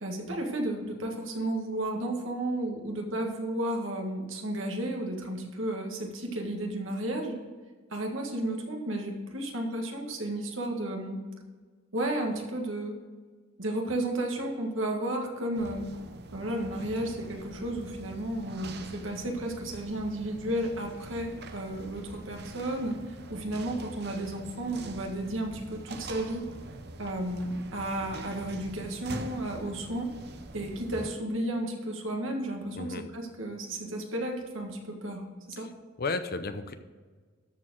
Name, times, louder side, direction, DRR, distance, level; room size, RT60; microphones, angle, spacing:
voice 1, 0.0-7.4 7.9-11.2 11.9-13.0 13.6-15.9 16.3-26.5 27.0-30.1 30.5-35.7, right 1 dB, 75° right, 2 dB, 1.8 m, -33 dB
sound 1, 15.5-31.1, right 2 dB, 55° right, 0.8 m, -44 dB
voice 2, 32.8-33.1 35.6-35.7 36.0-36.7, left 3 dB, 50° left, 10 dB, 0.7 m, -33 dB
13.0 x 4.6 x 6.4 m, 1.5 s
head